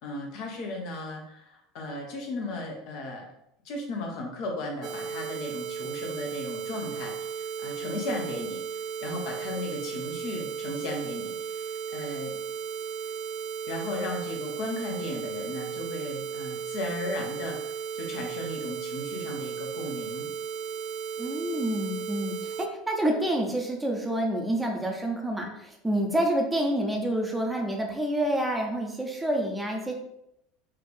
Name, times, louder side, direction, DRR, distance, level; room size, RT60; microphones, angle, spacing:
voice 1, 0.0-3.3 3.6-8.6 9.0-12.3 13.7-20.3, left 2 dB, 55° left, 1 dB, 0.8 m, -36 dB
sound 1, 4.8-22.7, right 7 dB, 40° right, 0.3 m, -35 dB
voice 2, 21.2-29.9, right 1 dB, 10° right, 1 dB, 0.7 m, -28 dB
4.4 x 2.5 x 3.3 m, 0.79 s
figure-of-eight pair, 70°, 0 cm